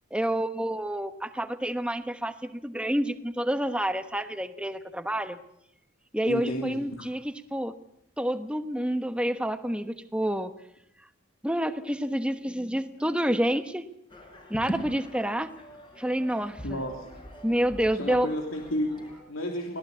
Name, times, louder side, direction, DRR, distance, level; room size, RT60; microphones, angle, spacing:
voice 1, 0.1-5.4 6.1-7.7 8.2-10.5 11.4-13.8 14.5-15.5 16.0-16.8 17.4-18.3, right 1 dB, 5° right, 9 dB, 1.1 m, -28 dB
voice 2, 6.2-7.1 16.6-17.0 17.9-19.8, equal, 85° left, 2 dB, 3.1 m, -32 dB
sound 1, 14.1-19.2, equal, 25° left, 4.7 m, -42 dB
24.5 x 18.0 x 8.4 m, 0.76 s
head